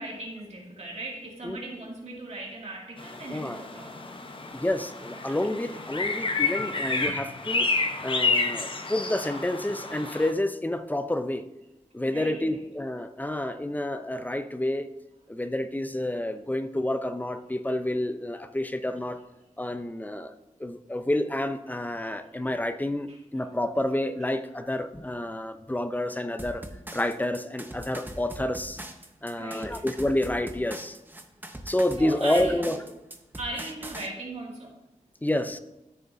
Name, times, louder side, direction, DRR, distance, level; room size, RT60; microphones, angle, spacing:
voice 1, 0.0-4.5 5.1-5.4 6.2-6.3 12.1-12.6 22.2-22.3 23.1-23.2 24.2-24.3 29.3-29.8 32.0-32.8 33.4-34.7, right 2 dB, 55° right, -3 dB, 2.3 m, -39 dB
sound 1, 3.0-10.3, left 3 dB, 40° left, 0.9 m, -30 dB
voice 2, 3.3-3.6 4.5-7.7 8.0-11.4 11.9-14.9 15.3-19.2 19.6-20.3 20.6-26.6 26.9-28.8 29.2-31.0 31.7-32.8 35.2-35.6, left 1 dB, 15° left, 9 dB, 0.6 m, -29 dB
sound 2, 26.4-34.1, right 1 dB, 15° right, 0.8 m, -41 dB
13.0 x 6.6 x 2.7 m, 0.94 s
wide cardioid pair, 80°, 13 cm